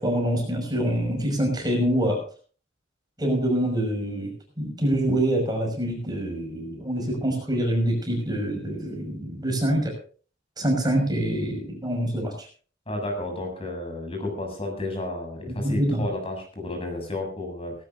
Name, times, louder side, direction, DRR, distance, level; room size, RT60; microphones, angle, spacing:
voice 1, 0.0-2.2 3.2-10.0 10.6-12.3 15.6-16.1, right 1 dB, 20° right, 3 dB, 6.0 m, -25 dB
voice 2, 12.9-17.7, left 2 dB, 30° left, 3 dB, 7.2 m, -32 dB
18.5 x 17.5 x 2.6 m, 0.40 s
head